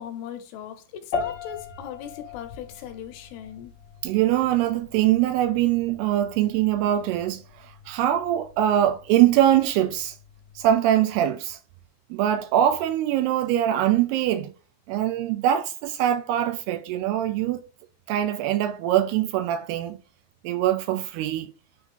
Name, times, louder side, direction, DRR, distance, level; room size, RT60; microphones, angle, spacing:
voice 1, 0.0-3.7, left 9 dB, 75° left, 3.0 m, -39 dB
sound 1, 1.1-10.7, left 5 dB, 45° left, 2.6 m, -39 dB
voice 2, 4.0-10.2 10.6-11.6 12.1-14.5 14.9-17.6 18.1-20.0 20.4-21.5, right 12 dB, 80° right, 2.4 m, -23 dB
10.5 x 3.6 x 3.6 m
omnidirectional pair, 4.9 m